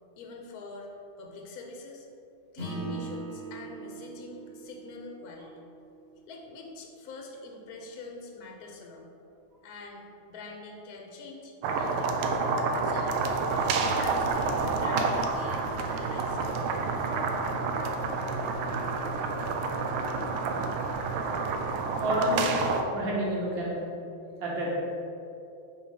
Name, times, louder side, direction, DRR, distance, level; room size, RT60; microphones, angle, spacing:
voice 1, 0.2-0.9 1.2-2.1 2.5-5.6 6.3-9.0 9.6-12.4 12.8-13.2 13.5-16.4, left 3 dB, 60° left, 1 dB, 1.0 m, -44 dB
Acoustic guitar / Strum, 2.6-7.4, right 3 dB, 30° right, 1.7 m, -41 dB
sound 1, 11.6-22.8, right 4 dB, 90° right, 1.5 m, -29 dB
voice 2, 22.0-23.8 24.4-24.7, equal, 65° right, -5 dB, 2.2 m, -30 dB
5.4 x 5.2 x 4.9 m, 2.7 s
omnidirectional pair, 2.3 m